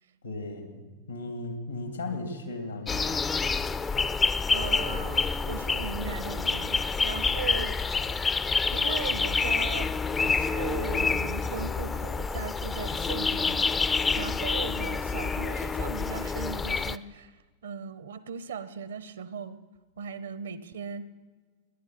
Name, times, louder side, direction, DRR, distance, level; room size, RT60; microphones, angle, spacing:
voice 1, 0.2-0.8 1.1-3.2, left 2 dB, 80° left, 6 dB, 2.3 m, -36 dB
sound 1, 2.9-17.0, left 4 dB, 15° left, 0.4 m, -28 dB
voice 2, 4.5-8.0 8.7-9.9 10.2-13.7 14.1-17.4 17.6-19.6 20.0-21.0, right 6 dB, 65° right, 16 dB, 0.7 m, -38 dB
18.0 x 10.5 x 5.8 m, 1.4 s
figure-of-eight pair, 90°, 0 cm